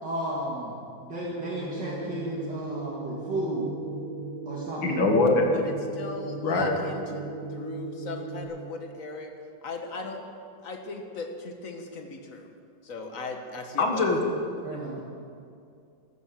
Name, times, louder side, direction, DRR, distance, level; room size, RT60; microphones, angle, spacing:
voice 1, 0.0-0.8 1.0-3.7 4.5-5.0 14.6-15.0, right 1 dB, 55° right, -5 dB, 2.7 m, -33 dB
sound 1, 1.4-8.4, right 3 dB, 75° right, 3.5 m, -37 dB
voice 2, 4.8-5.5 6.4-6.8 13.8-14.2, left 3 dB, 70° left, 2 dB, 2.5 m, -22 dB
voice 3, 5.5-7.3 7.5-9.3 9.6-10.2 10.6-12.5 12.8-14.1, left 3 dB, 45° left, 4 dB, 1.7 m, -38 dB
14.5 x 12.5 x 7.7 m, 2.4 s
omnidirectional pair, 2.2 m